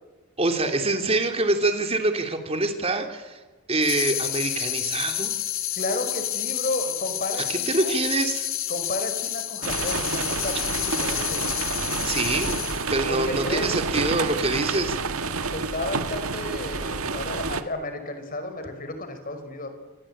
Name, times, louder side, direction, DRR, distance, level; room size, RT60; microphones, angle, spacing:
voice 1, 0.4-3.4 3.7-5.3 7.5-8.5 12.0-12.6 12.9-15.0, right 2 dB, 30° right, 5 dB, 3.3 m, -25 dB
sound 1, 3.8-13.0, left 13 dB, 70° left, 3.1 m, -29 dB
voice 2, 5.8-7.9 8.7-11.4 13.1-13.7 15.5-19.7, left 2 dB, 40° left, 8 dB, 5.1 m, -32 dB
sound 2, 9.6-17.6, right 4 dB, 85° right, 1.7 m, -29 dB
28.0 x 24.0 x 8.9 m, 1.3 s
head